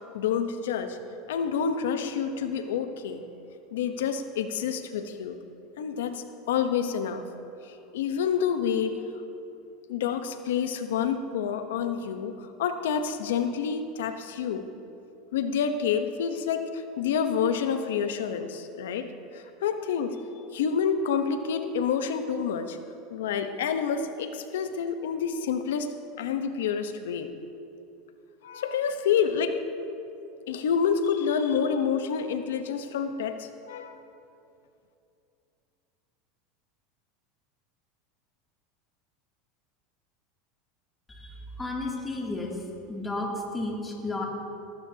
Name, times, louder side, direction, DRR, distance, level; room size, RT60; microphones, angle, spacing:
voice 1, 0.1-1.0 1.3-3.2 3.7-5.4 5.8-7.2 7.6-9.0 9.9-14.6 15.3-20.2 20.5-22.8 23.1-25.9 26.2-27.3 28.4-29.6 30.5-34.0, left 7 dB, 85° left, 8 dB, 1.0 m, -28 dB
voice 2, 41.1-42.6 42.9-44.3, left 2 dB, 15° left, -2 dB, 2.7 m, -33 dB
19.0 x 15.5 x 2.9 m, 2.7 s
supercardioid pair, 110°, 0 cm